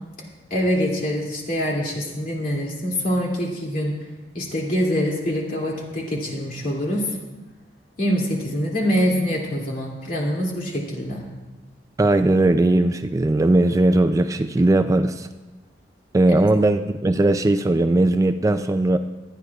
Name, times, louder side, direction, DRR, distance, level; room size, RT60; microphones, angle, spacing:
voice 1, 0.5-4.0 4.3-7.2 8.0-11.2, equal, 55° left, -3 dB, 2.6 m, -24 dB
voice 2, 12.0-15.3 16.1-19.0, right 2 dB, 20° right, 9 dB, 0.3 m, -18 dB
22.5 x 9.5 x 2.4 m, 1.2 s
head